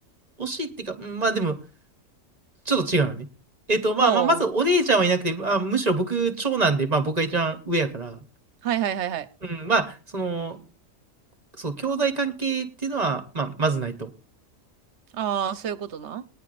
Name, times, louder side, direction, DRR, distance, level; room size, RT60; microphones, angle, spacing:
voice 1, 0.4-1.6 2.7-3.3 3.7-8.2 9.4-10.6 11.6-14.1, right 3 dB, 35° right, 1.1 m, -24 dB
voice 2, 4.0-4.4 8.6-9.3 15.1-16.3, right 9 dB, 60° right, 1.0 m, -27 dB
20.5 x 10.0 x 2.5 m
omnidirectional pair, 1.4 m